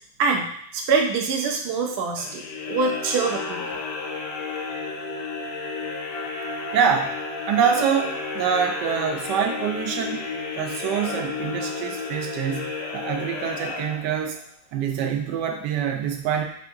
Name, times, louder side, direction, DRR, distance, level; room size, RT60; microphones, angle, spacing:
voice 1, 0.2-3.8, right 4 dB, 65° right, 2 dB, 0.6 m, -25 dB
sound 1, 2.1-14.4, left 4 dB, 80° left, 1.3 m, -32 dB
voice 2, 6.7-7.1 7.5-10.3 10.5-14.4 14.7-16.4, right 7 dB, 90° right, 2 dB, 1.3 m, -25 dB
3.5 x 2.6 x 4.6 m, 0.69 s
omnidirectional pair, 1.8 m